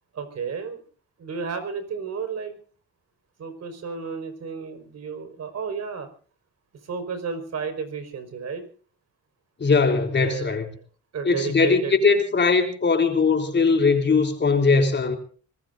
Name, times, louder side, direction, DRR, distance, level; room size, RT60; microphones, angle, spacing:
voice 1, 0.1-0.8 1.2-2.6 3.4-6.1 6.8-8.7 10.1-10.6 11.1-11.9, right 5 dB, 60° right, 8 dB, 5.0 m, -32 dB
voice 2, 9.6-10.7 11.2-15.2, left 4 dB, 35° left, 4 dB, 3.9 m, -20 dB
26.0 x 20.0 x 2.7 m, 0.42 s
cardioid pair, 90°, 30 cm